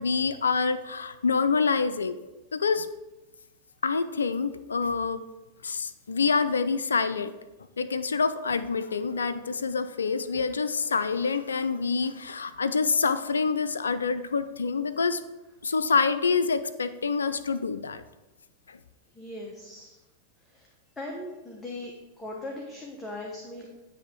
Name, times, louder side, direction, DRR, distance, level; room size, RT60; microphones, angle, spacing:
voice 1, 0.0-2.2 2.5-2.9 3.8-5.2 5.6-7.3 7.8-15.2 15.6-18.0 18.7-18.8, left 5 dB, 80° left, 13 dB, 0.3 m, -26 dB
voice 2, 19.1-20.0 20.5-20.7 21.0-23.7, left 1 dB, 10° left, -1 dB, 1.1 m, -39 dB
9.8 x 3.4 x 4.4 m, 1.1 s
hypercardioid pair, 95°, 0 cm